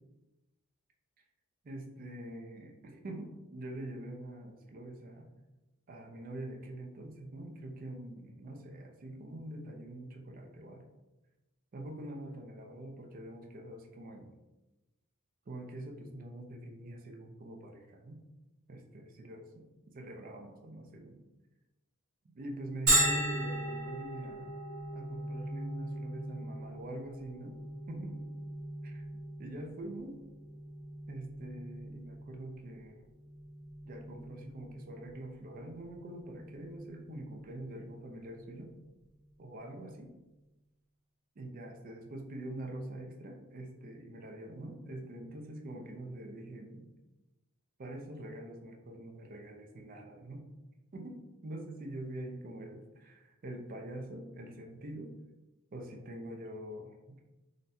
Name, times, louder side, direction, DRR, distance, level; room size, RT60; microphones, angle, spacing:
voice 1, 1.6-5.3 5.9-10.9 11.7-14.3 15.5-18.2 18.7-19.6 19.9-21.2 22.3-24.5 24.9-27.6 27.9-28.3 28.8-29.0 29.4-30.2 31.1-33.0 33.8-38.7 39.4-40.1 41.4-46.9 47.8-50.5 50.9-55.1 55.7-57.2, right 1 dB, 40° right, 2 dB, 0.4 m, -45 dB
Bell, 22.9-38.3, right 1 dB, 65° right, 1.1 m, -37 dB
3.8 x 2.1 x 2.7 m, 1.0 s
head